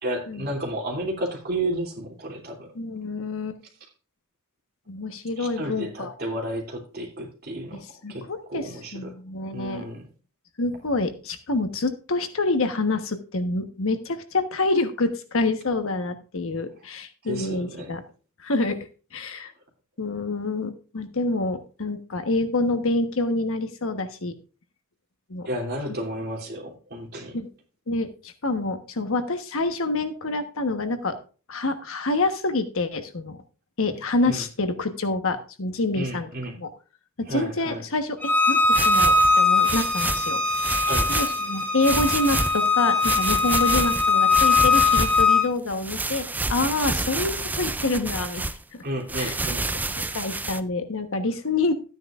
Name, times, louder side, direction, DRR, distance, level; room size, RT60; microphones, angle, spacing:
voice 1, 0.0-2.7 5.4-9.1 9.5-10.0 17.2-17.9 25.4-27.4 34.2-34.4 35.9-36.6 37.3-37.8 40.9-41.2 48.8-49.7, right 1 dB, 45° right, 2.9 m, -32 dB
voice 2, 2.7-3.6 4.9-6.1 7.7-9.9 10.6-18.0 18.4-18.8 19.1-19.5 20.0-24.3 25.3-25.5 27.3-27.5 27.9-31.2 31.5-33.4 33.8-36.3 36.6-36.7 37.2-40.4 41.1-48.8 49.2-49.3 49.8-51.7, left 2 dB, 65° left, 1.2 m, -27 dB
Bowed string instrument, 38.2-45.4, left 3 dB, 5° left, 2.9 m, -21 dB
sound 1, 38.6-41.4 41.8-42.7 43.0-45.3 45.7-48.6 49.1-50.6, right 2 dB, 10° right, 0.4 m, -29 dB
13.5 x 9.5 x 2.5 m
head